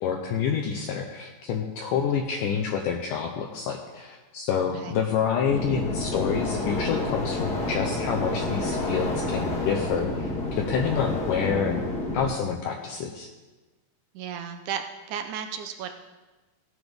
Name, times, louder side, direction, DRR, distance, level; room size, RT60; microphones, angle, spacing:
voice 1, 0.0-11.9 12.1-13.3, left 7 dB, 75° left, 2 dB, 2.0 m, -28 dB
sound 1, 5.5-12.3, left 2 dB, 45° left, 1.3 m, -29 dB
voice 2, 14.1-14.8 15.1-15.9, right 8 dB, 90° right, 6 dB, 1.7 m, -33 dB
17.0 x 10.0 x 3.5 m, 1.2 s
omnidirectional pair, 4.4 m